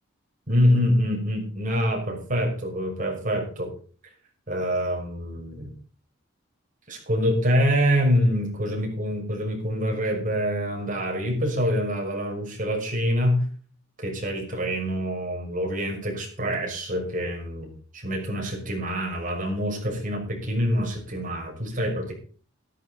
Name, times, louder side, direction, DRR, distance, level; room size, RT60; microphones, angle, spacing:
voice 1, 0.5-3.7 4.5-5.7 6.9-13.5 14.0-22.1, equal, 40° right, 1 dB, 6.2 m, -25 dB
14.5 x 13.5 x 4.2 m, 0.42 s
head